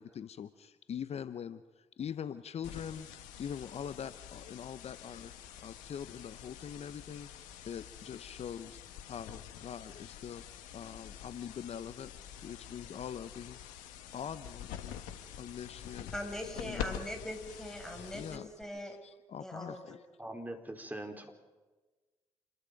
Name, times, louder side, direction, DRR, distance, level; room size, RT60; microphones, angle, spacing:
voice 1, 0.0-3.1 3.4-5.3 5.6-8.8 9.1-10.4 10.7-12.1 12.4-13.6 14.1-15.0 15.4-16.1 16.5-17.0 18.0-18.5 19.0-20.0, left 8 dB, 55° left, 14 dB, 0.9 m, -43 dB
sound 1, 2.6-18.6, left 9 dB, 75° left, 1.5 m, -47 dB
voice 2, 16.1-19.0 19.4-20.0, equal, 5° left, 3 dB, 7.1 m, -41 dB
voice 3, 20.2-21.3, right 1 dB, 15° right, 4 dB, 4.7 m, -42 dB
28.5 x 21.5 x 5.3 m, 1.2 s
hypercardioid pair, 40°, 13 cm